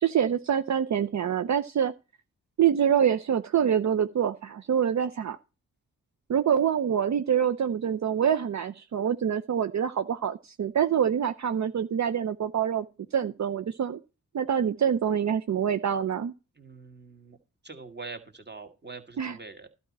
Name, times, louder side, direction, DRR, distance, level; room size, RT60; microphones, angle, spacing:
voice 1, 0.0-1.9 2.6-5.4 6.3-12.9 13.1-14.0 14.3-16.3 19.2-19.4, right 8 dB, 50° right, 0.6 m, -26 dB
voice 2, 16.6-17.4 17.6-19.7, right 4 dB, 30° right, 2.0 m, -43 dB
11.5 x 4.2 x 7.2 m
supercardioid pair, 40°, 36 cm